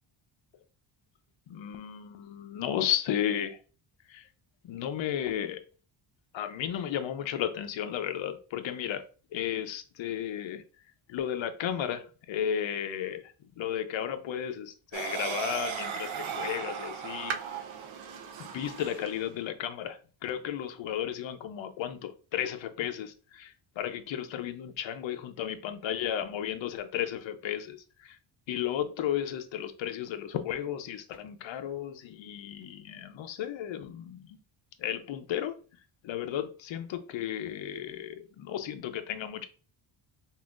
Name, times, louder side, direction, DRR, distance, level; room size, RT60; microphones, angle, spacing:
voice 1, 1.5-3.6 4.1-4.3 4.6-5.6 6.3-9.0 9.3-10.6 11.1-17.6 18.4-28.2 28.5-34.4 34.8-35.6 36.0-39.5, left 10 dB, 65° left, 0.7 m, -34 dB
sound 1, 14.9-19.3, right 7 dB, 70° right, 0.7 m, -36 dB
5.5 x 2.5 x 2.4 m
wide cardioid pair, 150°, 49 cm